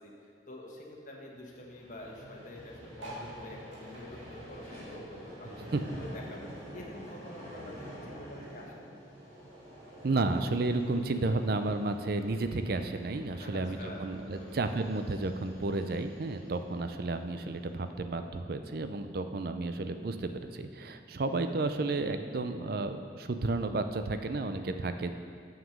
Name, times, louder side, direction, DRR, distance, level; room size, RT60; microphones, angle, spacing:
voice 1, 0.0-9.0 13.4-14.7, left 1 dB, 45° left, -1 dB, 1.2 m, -47 dB
Vehicle, 1.3-17.7, equal, 35° right, 2.1 m, -49 dB
sound 1, 2.9-5.7 6.0-7.6 8.1-8.2 8.3-8.4 8.6-9.0 9.8-9.9, right 1 dB, 85° right, 2.2 m, -48 dB
voice 2, 10.0-25.1, right 2 dB, 55° right, 8 dB, 0.5 m, -32 dB
7.4 x 6.1 x 6.4 m, 2.3 s
head